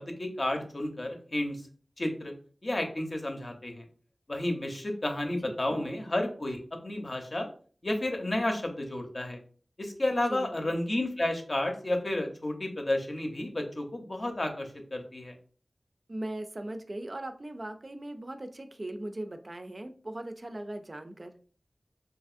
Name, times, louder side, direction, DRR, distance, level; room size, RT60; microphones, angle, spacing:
voice 1, 0.0-1.6 2.0-2.3 2.6-3.8 4.3-7.5 7.8-9.4 9.8-15.3, left 1 dB, 50° left, 4 dB, 0.6 m, -31 dB
voice 2, 5.4-6.0 10.3-10.7 16.1-21.4, right 1 dB, 50° right, 7 dB, 0.3 m, -39 dB
2.8 x 2.5 x 2.4 m, 0.42 s
wide cardioid pair, 45°, 0 cm